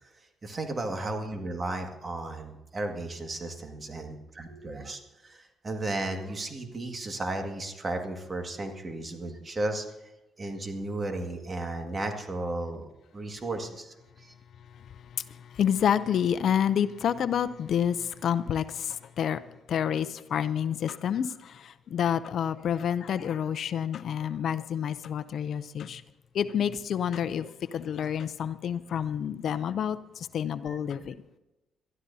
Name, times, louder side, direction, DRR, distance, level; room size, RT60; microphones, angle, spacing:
voice 1, 0.4-9.9 10.4-14.3 30.7-30.8, right 2 dB, 30° right, 4 dB, 1.9 m, -34 dB
voice 2, 15.6-19.4 19.7-26.0 26.3-31.1, left 8 dB, 65° left, 14 dB, 0.5 m, -28 dB
22.5 x 13.0 x 2.8 m, 0.99 s
cardioid pair, 90°, 0 cm